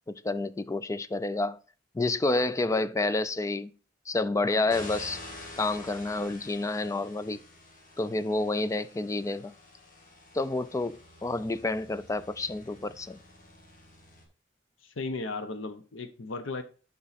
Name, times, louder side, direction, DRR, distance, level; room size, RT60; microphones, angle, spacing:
voice 1, 0.1-1.6 1.9-3.7 4.1-5.2 5.6-7.4 8.0-9.5 10.3-13.2, left 2 dB, 15° left, 0.3 m, -29 dB
sound 1, 4.7-14.2, left 2 dB, 45° left, 1.6 m, -48 dB
voice 2, 14.8-16.6, left 3 dB, 85° left, 0.8 m, -35 dB
7.1 x 5.5 x 4.1 m
head